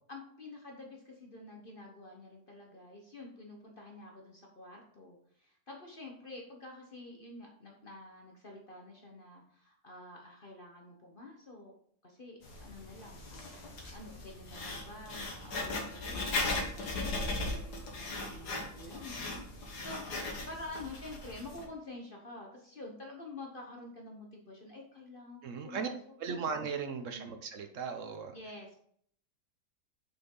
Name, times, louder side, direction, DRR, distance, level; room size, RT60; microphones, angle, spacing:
voice 1, 0.1-11.7 12.0-26.0 26.3-26.5 27.1-27.4 28.3-28.8, left 2 dB, 35° left, 0 dB, 1.1 m, -48 dB
Writing, 12.4-21.6, left 2 dB, 75° left, 2.0 m, -38 dB
voice 2, 25.4-25.9 26.2-28.4, right 5 dB, 60° right, 7 dB, 1.0 m, -37 dB
6.8 x 6.1 x 3.8 m, 0.63 s
omnidirectional pair, 1.7 m